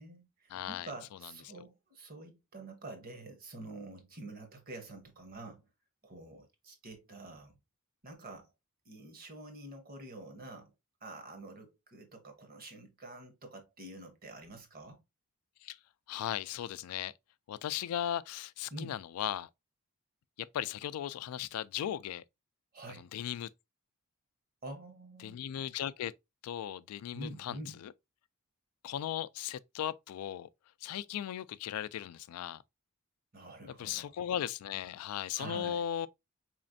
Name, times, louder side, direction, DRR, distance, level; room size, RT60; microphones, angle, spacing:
voice 1, 0.0-5.7 6.0-7.6 8.0-8.5 8.8-10.7 11.0-15.0 18.7-18.9 22.7-23.1 24.6-25.4 27.1-27.8 33.3-34.2 35.3-35.8, right 2 dB, 40° right, 1.0 m, -47 dB
voice 2, 0.5-0.9 15.6-15.8 16.1-17.1 17.5-19.5 20.5-22.2 23.0-23.5 25.2-26.1 26.4-27.9 28.8-30.5 30.8-32.6 33.8-36.1, left 10 dB, 85° left, 0.3 m, -37 dB
4.2 x 3.1 x 2.5 m
head